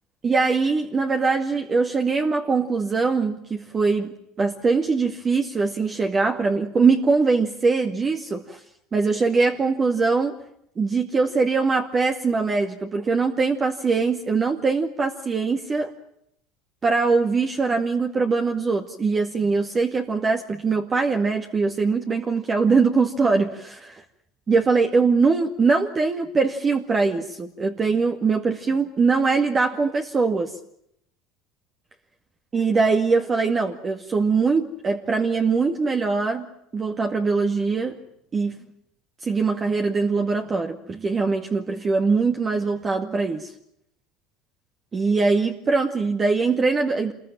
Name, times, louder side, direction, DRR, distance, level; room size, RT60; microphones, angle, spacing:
voice 1, 0.2-8.6 8.9-10.4 10.8-15.9 16.8-24.0 24.5-30.5 32.5-36.5 36.7-38.0 38.3-38.6 39.2-43.5 44.9-47.1, right 4 dB, 30° right, 2.1 m, -22 dB
27.0 x 21.5 x 9.0 m
supercardioid pair, 105°, 0 cm